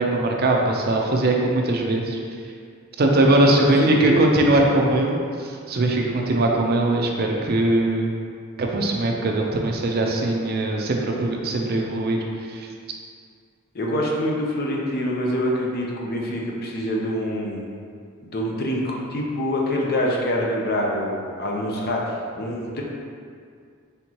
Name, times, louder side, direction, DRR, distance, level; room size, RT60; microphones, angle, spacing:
voice 1, 0.0-2.2 3.0-8.1 8.6-12.2 12.5-12.7, right 2 dB, 50° right, 0 dB, 0.5 m, -21 dB
voice 2, 3.4-4.2 4.9-5.0 13.7-17.7 18.2-22.0 22.3-22.8, equal, 50° left, -2 dB, 0.6 m, -25 dB
4.5 x 3.5 x 2.8 m, 2.2 s
head